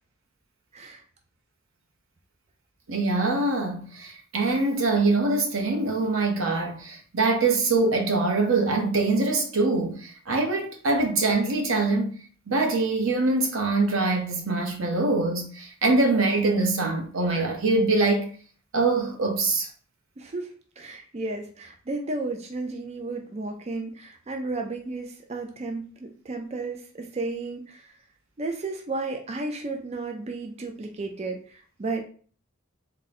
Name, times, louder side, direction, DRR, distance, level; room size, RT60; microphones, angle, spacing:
voice 1, 2.9-12.1 12.5-18.3 18.7-19.7, right 3 dB, 85° right, 0.9 m, -24 dB
voice 2, 20.2-27.9 28.4-32.0, right 3 dB, 30° right, 0.4 m, -33 dB
3.6 x 2.2 x 4.1 m
head